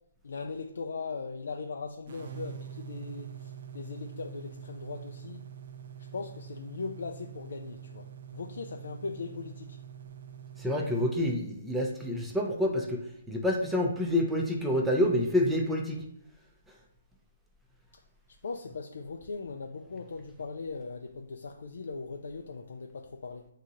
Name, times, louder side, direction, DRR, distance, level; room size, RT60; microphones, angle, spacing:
voice 1, 0.2-5.4 6.1-9.8 18.4-23.5, left 4 dB, 70° left, 3 dB, 0.3 m, -39 dB
sound 1, 2.1-11.0, right 8 dB, 55° right, 0.5 m, -45 dB
voice 2, 10.6-16.0, left 1 dB, 5° right, 0 dB, 0.5 m, -28 dB
6.9 x 2.8 x 2.5 m, 0.77 s
hypercardioid pair, 140°, 0 cm